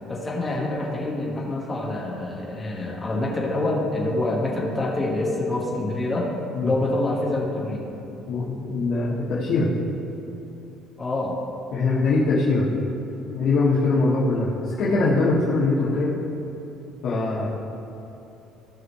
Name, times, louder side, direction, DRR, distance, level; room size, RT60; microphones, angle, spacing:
voice 1, 0.1-6.3 6.6-7.9 11.0-11.4, left 2 dB, 15° left, -4 dB, 1.5 m, -26 dB
voice 2, 8.3-9.7 11.7-12.7 13.3-16.1 17.0-17.5, left 3 dB, 50° left, -10 dB, 1.8 m, -22 dB
17.0 x 6.1 x 3.2 m, 3.0 s
cardioid pair, 180°, 0 cm